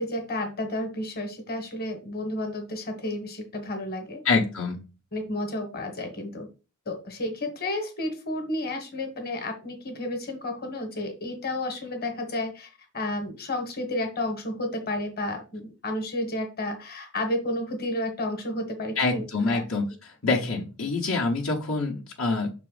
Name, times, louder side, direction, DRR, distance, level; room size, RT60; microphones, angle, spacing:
voice 1, 0.0-4.2 5.1-6.5 6.9-19.6, left 1 dB, 45° left, 5 dB, 1.4 m, -31 dB
voice 2, 4.2-4.8 19.0-19.9 20.2-22.5, left 3 dB, 70° left, -2 dB, 1.2 m, -25 dB
6.0 x 4.1 x 4.0 m, 0.32 s
head